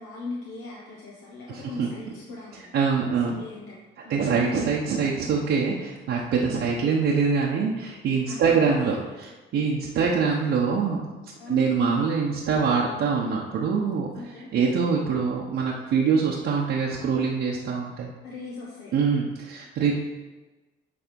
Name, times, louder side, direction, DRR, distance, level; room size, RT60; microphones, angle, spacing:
voice 1, 0.0-2.7 3.2-4.3 6.4-6.5 8.2-8.9 11.4-11.6 14.1-14.5 18.2-18.9, left 3 dB, 90° left, -4 dB, 1.2 m, -39 dB
voice 2, 1.5-1.9 2.7-3.3 4.1-8.9 9.5-11.0 11.5-18.1 18.9-19.9, right 5 dB, 75° right, -4 dB, 1.0 m, -24 dB
8.6 x 3.6 x 5.2 m, 1.2 s
cardioid pair, 90°, 20 cm